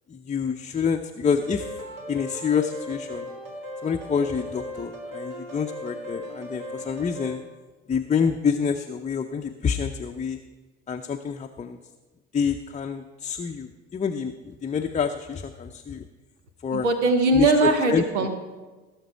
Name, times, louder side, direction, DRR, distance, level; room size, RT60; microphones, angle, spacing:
voice 1, 0.1-1.8 2.1-3.3 3.8-7.4 7.9-10.4 10.9-11.8 12.3-16.1 16.6-16.9 17.3-18.3, left 6 dB, 20° left, 5 dB, 0.6 m, -27 dB
sound 1, 1.4-7.3, left 1 dB, 60° right, 2.4 m, -37 dB
voice 2, 16.7-18.3, right 2 dB, 80° right, 7 dB, 1.1 m, -20 dB
17.5 x 6.6 x 4.6 m, 1.3 s
figure-of-eight pair, 55°, 35 cm